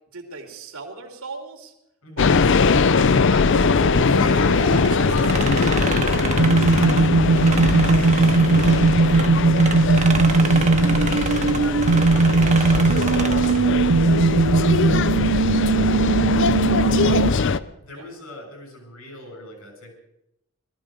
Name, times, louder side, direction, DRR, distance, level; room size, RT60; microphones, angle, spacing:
voice 1, 0.1-1.7 2.2-3.8 16.9-17.3 17.9-18.1, right 3 dB, 80° right, 3 dB, 2.9 m, -38 dB
voice 2, 2.0-2.5 4.0-8.3 11.5-16.2 17.8-19.9, equal, 80° left, 2 dB, 7.4 m, -40 dB
sound 1, 2.2-17.6, left 4 dB, 55° left, 0.5 m, -21 dB
sound 2, 3.5-17.3, right 4 dB, 65° right, 0.5 m, -19 dB
sound 3, 4.8-9.3 9.6-13.6, right 5 dB, 30° right, 0.9 m, -30 dB
18.5 x 14.5 x 5.2 m, 0.83 s
head